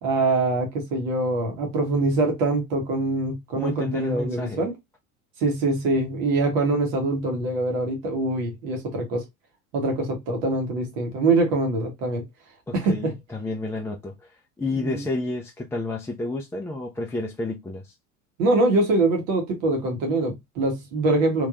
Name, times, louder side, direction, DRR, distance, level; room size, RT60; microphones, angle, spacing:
voice 1, 0.0-4.7 5.4-9.2 9.7-12.2 12.7-13.1 14.8-15.1 18.4-21.5, right 2 dB, 60° right, 1.6 m, -24 dB
voice 2, 3.6-4.6 12.7-17.9, left 2 dB, 5° left, 0.5 m, -30 dB
3.3 x 3.2 x 2.5 m
figure-of-eight pair, 65°, 44 cm